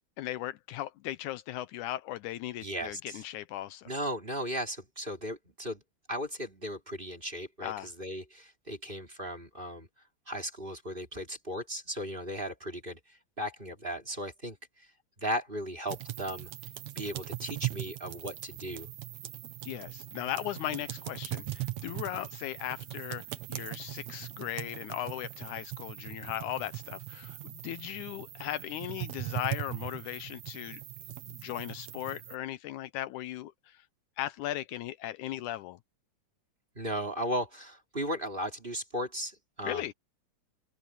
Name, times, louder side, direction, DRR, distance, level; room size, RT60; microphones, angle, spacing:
voice 1, 0.2-3.9 7.6-7.9 19.7-23.2 23.5-30.8 31.3-33.9 34.2-35.8 39.6-39.9, left 14 dB, 80° left, 2.1 m, -37 dB
voice 2, 2.6-3.2 3.9-5.8 6.1-7.7 8.0-9.9 10.3-13.0 13.4-14.6 15.2-16.5 17.0-18.9 36.8-39.9, equal, 15° right, 3.5 m, -36 dB
sound 1, 15.9-32.4, right 15 dB, 65° right, 2.3 m, -40 dB
open air
omnidirectional pair, 3.6 m